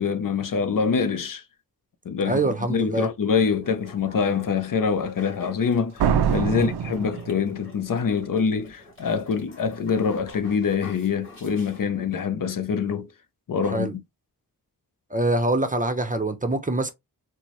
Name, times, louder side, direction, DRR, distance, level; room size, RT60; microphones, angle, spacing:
voice 1, 0.0-1.4 2.1-6.0 6.3-13.1 13.5-14.0, left 6 dB, 55° left, 0.6 m, -25 dB
voice 2, 2.2-3.1 6.5-6.7 13.7-13.9 15.1-16.9, right 2 dB, 20° right, 0.6 m, -25 dB
sound 1, 3.6-12.2, left 2 dB, 30° left, 2.1 m, -48 dB
Slam, 6.0-7.9, right 7 dB, 75° right, 0.5 m, -24 dB
4.4 x 2.1 x 3.0 m
wide cardioid pair, 75°, 39 cm